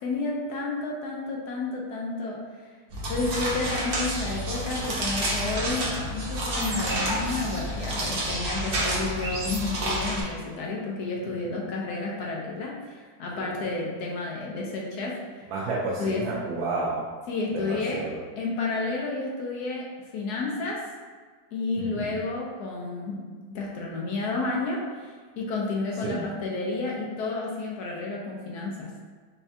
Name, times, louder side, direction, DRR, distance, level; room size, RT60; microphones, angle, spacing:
voice 1, 0.0-2.4 3.1-15.1 16.0-16.2 17.3-18.0 18.4-19.9 20.1-20.8 21.5-23.2 23.5-28.9, left 3 dB, 70° left, -3 dB, 1.1 m, -31 dB
sound 1, 2.9-10.2, right 1 dB, 65° right, 0.5 m, -29 dB
sound 2, 6.6-10.3, right 1 dB, 50° right, 1.1 m, -38 dB
voice 2, 15.5-17.1 17.5-18.2 21.8-22.2 26.0-26.3, right 3 dB, 90° right, -5 dB, 1.3 m, -31 dB
5.4 x 2.3 x 2.7 m, 1.5 s
omnidirectional pair, 2.0 m